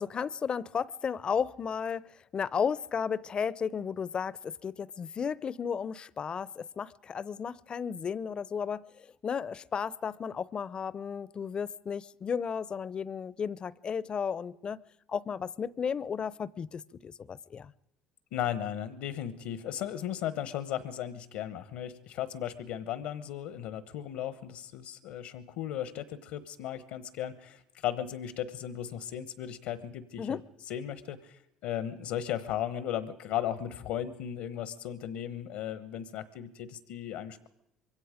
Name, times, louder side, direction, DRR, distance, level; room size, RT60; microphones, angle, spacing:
voice 1, 0.0-14.8 15.1-17.7 30.2-30.4, left 6 dB, 40° left, 0.8 m, -34 dB
voice 2, 18.3-30.4 30.7-37.5, left 10 dB, 75° left, 1.1 m, -36 dB
25.5 x 23.0 x 5.1 m
hypercardioid pair, 65°, 2 cm